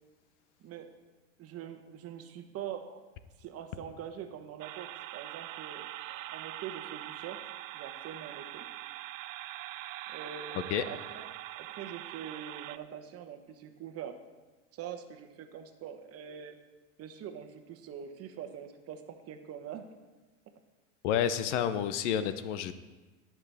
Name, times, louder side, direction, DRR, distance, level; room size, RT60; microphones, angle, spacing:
voice 1, 0.6-0.9 1.4-3.0 3.4-8.6 10.1-11.3 11.6-14.2 14.7-16.6 17.0-19.9 21.5-21.7, right 8 dB, 40° right, 7 dB, 1.1 m, -44 dB
sound 1, 4.6-12.8, right 15 dB, 80° right, 0.5 m, -43 dB
voice 2, 21.0-22.7, left 9 dB, 65° left, 12 dB, 0.8 m, -29 dB
17.5 x 6.0 x 3.5 m, 1.2 s
hypercardioid pair, 100°, 38 cm